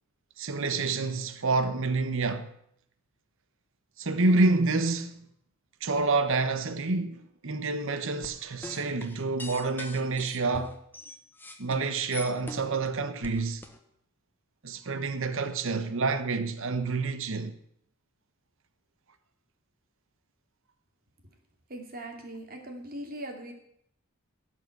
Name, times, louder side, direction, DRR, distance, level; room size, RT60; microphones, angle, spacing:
voice 1, 0.4-2.5 4.0-5.3 5.8-10.8 11.6-13.6 14.6-17.5, right 3 dB, 65° right, 1.0 m, -28 dB
sound 1, 8.2-12.9 13.2-13.8, left 2 dB, 10° left, 1.1 m, -42 dB
voice 2, 21.7-23.5, right 1 dB, 45° right, 2.5 m, -40 dB
16.0 x 5.7 x 7.7 m
head